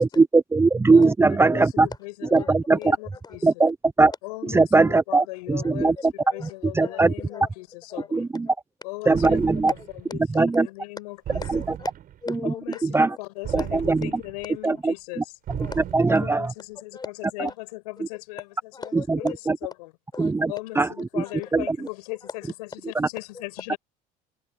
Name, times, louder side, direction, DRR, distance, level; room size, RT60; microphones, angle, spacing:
voice 1, 0.0-1.9 2.3-2.8 3.4-4.1 4.5-6.1 6.8-7.1 8.1-8.5 9.1-9.7 10.4-10.7 12.9-13.1 13.5-13.6 13.9-14.0 14.6-14.9 15.9-16.5 20.2-20.9 21.2-21.3 21.5-21.8 23.0-23.1, right 3 dB, 15° right, 0.7 m, -19 dB
voice 2, 1.5-2.5 2.7-3.5 4.2-8.3 8.8-9.4 9.9-11.4 12.5-15.4 16.1-18.5 18.8-18.9 19.6-19.9 20.5-23.8, left 23 dB, 85° left, 6.2 m, -38 dB
voice 3, 2.8-3.5 4.1-4.2 5.6-5.7 6.2-7.0 7.3-7.5 7.9-8.1 8.5-8.6 9.8-9.9 11.3-11.9 12.2-12.8 13.1-13.2 13.6-13.7 15.6-15.9 16.9-17.1 18.7-19.3 20.1-20.3 21.2-21.3 22.2-22.3 23.3-23.5, left 4 dB, 20° left, 6.4 m, -39 dB
sound 1, 9.1-10.0 11.3-12.2 13.4-14.5 15.5-16.3, right 11 dB, 50° right, 4.8 m, -35 dB
supercardioid pair, 95°, 19 cm